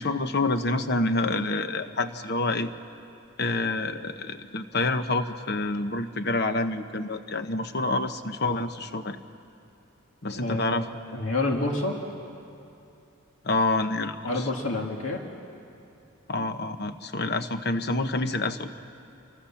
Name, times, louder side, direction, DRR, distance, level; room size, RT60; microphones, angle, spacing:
voice 1, 0.0-2.7 3.4-9.2 10.2-10.9 13.4-14.5 16.3-18.7, left 2 dB, 50° left, 9 dB, 1.1 m, -27 dB
voice 2, 10.3-10.8 11.1-12.0 14.2-15.2, left 2 dB, 75° left, 1 dB, 2.1 m, -28 dB
28.5 x 24.0 x 7.2 m, 2.6 s
head